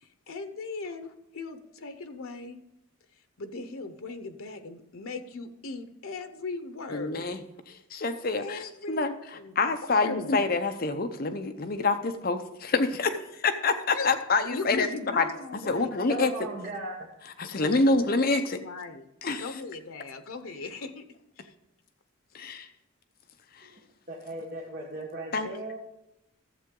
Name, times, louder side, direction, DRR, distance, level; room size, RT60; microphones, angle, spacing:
voice 1, 0.0-2.6 3.4-7.3 8.4-9.1 9.3-10.3 13.9-14.1 14.4-16.0 17.5-18.2 18.6-19.0 19.4-21.0 21.4-21.5, left 3 dB, 85° left, 8 dB, 0.8 m, -38 dB
voice 2, 6.9-7.4 7.7-14.9 15.2-15.3 15.7-16.3 17.4-18.6 19.2-19.5 22.3-22.7 23.6-23.7 25.3-25.5, left 3 dB, 45° left, 8 dB, 0.7 m, -27 dB
voice 3, 16.1-17.0 23.6-23.7 24.1-25.8, right 1 dB, 40° right, -4 dB, 1.3 m, -37 dB
13.5 x 7.6 x 3.7 m, 0.89 s
head